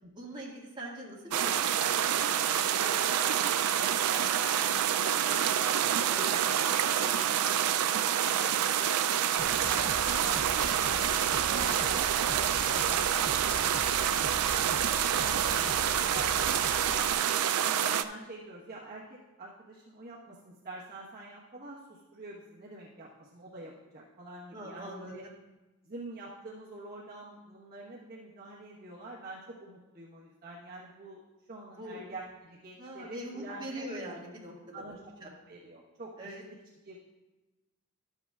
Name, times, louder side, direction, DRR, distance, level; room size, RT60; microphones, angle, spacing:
voice 1, 0.2-1.8 2.0-2.3 6.0-6.7 11.4-12.0 15.4-15.8 24.5-25.3 31.7-32.0 32.8-34.7 35.2-35.3 36.2-36.4, right 1 dB, 20° right, -5 dB, 1.8 m, -43 dB
sound 1, 1.3-18.0, right 9 dB, 90° right, 0.4 m, -27 dB
voice 2, 2.8-6.3 6.7-12.1 12.3-15.5 16.1-17.3 17.7-25.2 25.8-31.2 31.5-33.9 34.7-36.3 36.8-37.0, right 2 dB, 45° right, -6 dB, 1.2 m, -46 dB
sound 2, 9.4-17.1, left 2 dB, 20° left, 0.4 m, -41 dB
12.5 x 7.9 x 2.4 m, 1.1 s
head